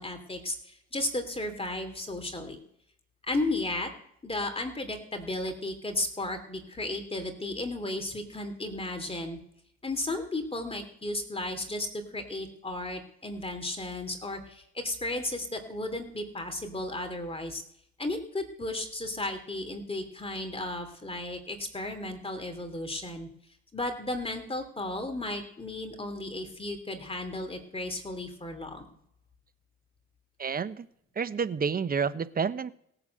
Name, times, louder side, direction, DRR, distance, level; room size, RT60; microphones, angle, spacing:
voice 1, 0.0-2.6 3.3-3.9 4.2-9.4 9.8-17.6 18.0-23.3 23.7-28.9, left 2 dB, 20° left, 6 dB, 2.9 m, -34 dB
voice 2, 30.4-30.9 31.2-32.7, right 6 dB, 30° right, 15 dB, 0.9 m, -29 dB
17.0 x 6.9 x 7.9 m, 0.73 s
supercardioid pair, 75°, 32 cm